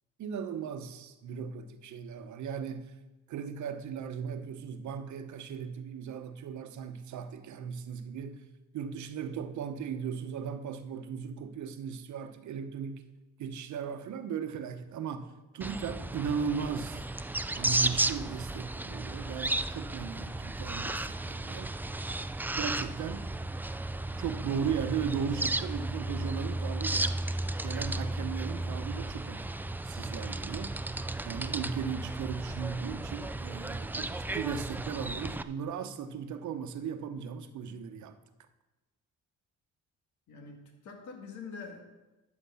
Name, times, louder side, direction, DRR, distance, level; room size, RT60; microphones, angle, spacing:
voice 1, 0.2-3.0 3.3-8.4 8.7-13.0 13.4-17.0 17.5-21.7 22.6-23.3 24.2-27.2 27.6-29.5 29.8-30.8 31.2-38.2, right 7 dB, 70° right, 1.0 m, -37 dB
sound 1, 15.6-35.4, right 2 dB, 5° right, 0.4 m, -34 dB
voice 2, 40.3-41.8, left 5 dB, 75° left, 2.1 m, -45 dB
12.5 x 5.3 x 6.9 m
cardioid pair, 90°, 30 cm